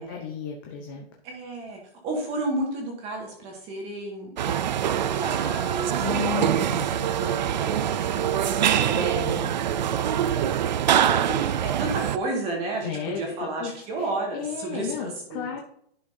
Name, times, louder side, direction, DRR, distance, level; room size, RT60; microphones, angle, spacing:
voice 1, 0.0-1.1 6.0-7.3 8.9-9.5 12.8-15.6, left 8 dB, 20° left, 1 dB, 0.8 m, -34 dB
voice 2, 1.2-6.0 6.3-6.6 7.2-10.0 10.3-15.6, right 2 dB, 20° right, 0 dB, 1.9 m, -33 dB
sound 1, 4.4-12.2, right 10 dB, 45° right, 0.5 m, -24 dB
11.0 x 6.1 x 2.8 m, 0.67 s
hypercardioid pair, 165°, 31 cm